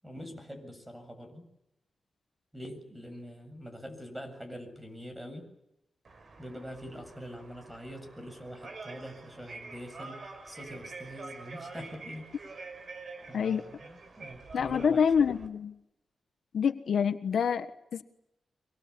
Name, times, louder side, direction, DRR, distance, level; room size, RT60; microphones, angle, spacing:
voice 1, 0.0-1.5 2.5-5.5 6.4-12.5 13.3-15.0, equal, 5° right, 7 dB, 7.5 m, -44 dB
sound 1, 6.0-15.5, right 3 dB, 55° right, 5.1 m, -47 dB
voice 2, 14.5-15.7 16.5-18.0, left 7 dB, 80° left, 10 dB, 1.4 m, -27 dB
25.5 x 23.5 x 8.6 m, 0.86 s
wide cardioid pair, 125°, 0 cm